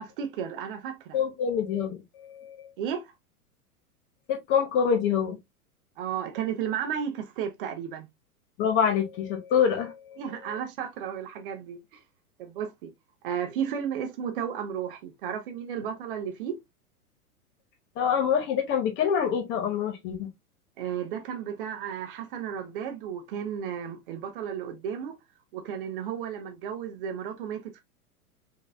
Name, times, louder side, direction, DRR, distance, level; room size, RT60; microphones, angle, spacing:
voice 1, 0.0-1.2 2.8-3.1 6.0-8.1 10.2-12.0 12.4-12.9 13.2-16.5 20.8-25.2 25.5-27.8, right 8 dB, 35° right, 0.8 m, -33 dB
voice 2, 1.1-2.7 4.3-5.4 8.6-10.2 10.5-10.6 18.0-20.3, left 7 dB, 25° left, 0.9 m, -26 dB
5.2 x 3.0 x 2.2 m
figure-of-eight pair, 100°, 45 cm